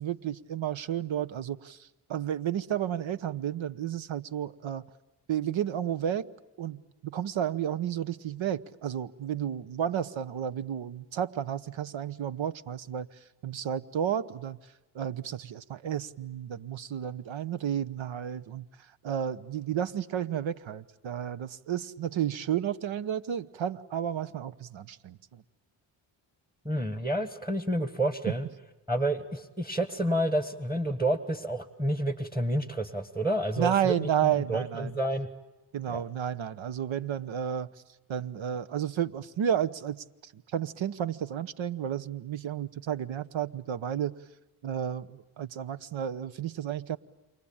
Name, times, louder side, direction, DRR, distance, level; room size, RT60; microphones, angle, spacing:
voice 1, 0.0-4.8 5.3-6.3 6.6-13.1 13.4-14.6 14.9-18.7 19.0-25.4 33.6-34.9 35.7-37.7 38.1-44.1 44.6-47.0, right 9 dB, 65° right, 15 dB, 0.9 m, -32 dB
voice 2, 26.6-28.4 28.9-35.3 35.9-36.0, right 1 dB, 10° right, 10 dB, 1.6 m, -29 dB
28.5 x 24.0 x 8.8 m, 1.1 s
supercardioid pair, 40°, 50 cm